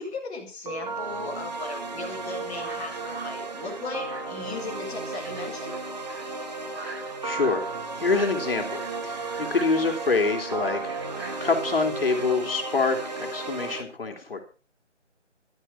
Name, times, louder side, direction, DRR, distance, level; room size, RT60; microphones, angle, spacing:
voice 1, 0.0-5.8, left 4 dB, 10° left, -7 dB, 2.9 m, -37 dB
sound 1, 0.7-13.8, right 3 dB, 35° right, 2.1 m, -34 dB
sound 2, 2.5-12.2, right 2 dB, 60° right, 6.7 m, -44 dB
voice 2, 7.2-10.8 11.4-14.4, left 4 dB, 50° left, 3 dB, 3.6 m, -26 dB
13.0 x 13.0 x 4.9 m, 0.36 s
figure-of-eight pair, 160°, 36 cm